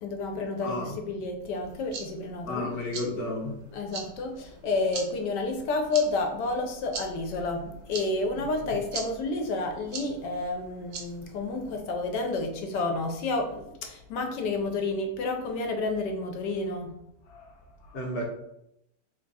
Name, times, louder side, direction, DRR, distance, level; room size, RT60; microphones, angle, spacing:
voice 1, 0.0-2.7 3.7-17.0 17.3-18.0, left 3 dB, 75° left, 3 dB, 1.2 m, -30 dB
voice 2, 0.6-1.0 2.5-3.6 17.9-18.3, left 1 dB, 45° left, -1 dB, 0.8 m, -32 dB
sound 1, 1.6-11.8, right 4 dB, 85° right, 1.3 m, -43 dB
3.5 x 2.3 x 3.9 m, 0.80 s
omnidirectional pair, 1.9 m